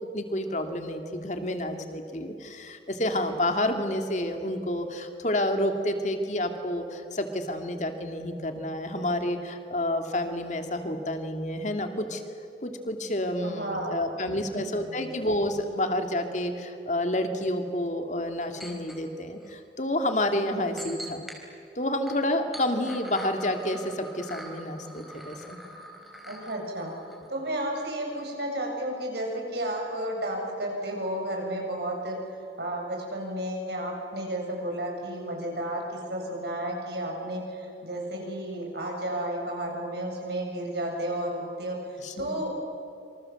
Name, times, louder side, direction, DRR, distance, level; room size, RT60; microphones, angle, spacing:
voice 1, 0.1-12.2 12.6-21.2 21.8-25.6 42.0-42.4, left 1 dB, 40° left, 6 dB, 2.6 m, -29 dB
voice 2, 13.4-14.7 15.0-15.1 26.2-26.9 27.3-32.2 32.6-42.5, right 1 dB, 65° right, 1 dB, 7.4 m, -32 dB
sound 1, 18.6-19.0 19.4-19.5 20.8-21.4 21.9-27.8 28.1-28.2, right 1 dB, ahead, 4.2 m, -44 dB
27.0 x 26.5 x 7.9 m, 2.6 s
head